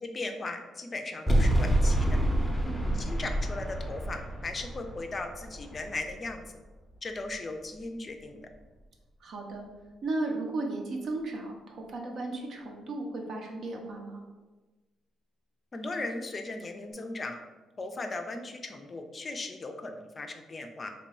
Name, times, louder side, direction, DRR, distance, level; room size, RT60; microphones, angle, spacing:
voice 1, 0.0-2.2 2.9-6.4 7.0-8.5 15.7-17.4 17.8-20.9, left 2 dB, 35° left, 5 dB, 0.4 m, -37 dB
sound 1, 1.3-6.4, right 1 dB, ahead, 0.6 m, -28 dB
voice 2, 9.2-9.7 10.0-14.2, right 2 dB, 65° right, 1 dB, 0.7 m, -35 dB
2.9 x 2.2 x 4.1 m, 1.2 s
cardioid pair, 90°, 0 cm